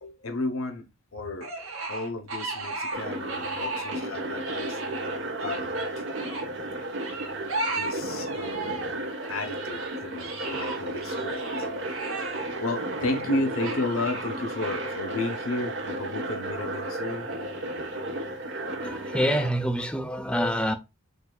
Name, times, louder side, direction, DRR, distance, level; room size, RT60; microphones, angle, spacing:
voice 1, 0.0-0.8 1.1-1.5 1.9-4.8 5.4-5.9 7.7-9.0 9.3-11.7 12.2-17.3, left 2 dB, 80° left, 0.9 m, -33 dB
sound 1, 1.4-4.1 4.3-6.5 7.0-8.9 9.2-16.2 16.8-18.1, right 3 dB, 80° right, 1.7 m, -36 dB
sound 2, 2.9-19.5, right 1 dB, 60° right, 1.1 m, -33 dB
voice 2, 18.8-20.8, equal, 5° left, 0.5 m, -26 dB
7.9 x 2.7 x 2.3 m
head